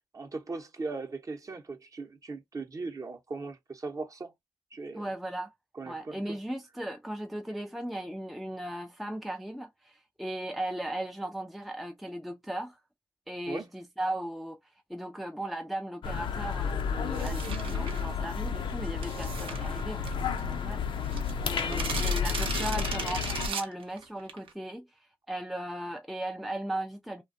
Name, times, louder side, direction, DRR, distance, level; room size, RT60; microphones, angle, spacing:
voice 1, 0.1-4.3 4.7-5.1 5.7-6.4 13.5-13.7 21.7-21.8, right 3 dB, 35° right, 0.8 m, -39 dB
voice 2, 4.9-5.5 5.8-12.8 13.3-14.6 14.9-20.8 21.4-24.9 25.3-27.2, right 1 dB, ahead, 0.4 m, -37 dB
sound 1, 16.0-23.5, left 6 dB, 65° left, 0.4 m, -31 dB
sound 2, 17.1-18.1 19.0-20.4 20.7-20.8 21.0-24.5, right 5 dB, 70° right, 0.6 m, -37 dB
2.4 x 2.2 x 2.6 m
supercardioid pair, 50°, 9 cm